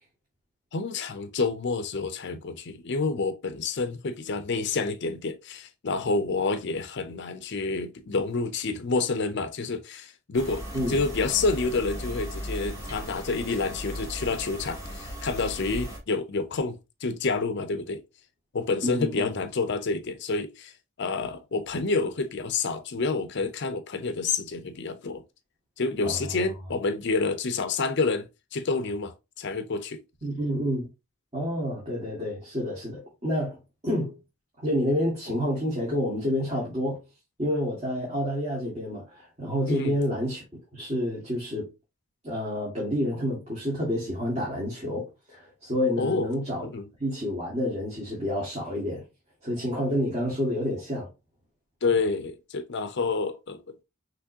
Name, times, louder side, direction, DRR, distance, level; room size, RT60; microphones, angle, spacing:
voice 1, 0.7-10.6 10.9-18.0 18.5-20.7 21.0-25.2 25.8-30.0 39.7-40.0 46.0-46.3 46.6-46.9 51.8-53.6, left 3 dB, 55° left, 0.5 m, -28 dB
sound 1, 10.3-16.0, equal, 15° right, 2.5 m, -37 dB
voice 2, 18.8-19.3 26.0-26.5 30.2-30.9 31.3-34.2 34.6-37.0 37.4-40.4 40.7-41.7 42.2-46.7 47.0-49.0 49.4-51.1, equal, 30° right, 1.9 m, -29 dB
5.9 x 3.2 x 2.7 m
head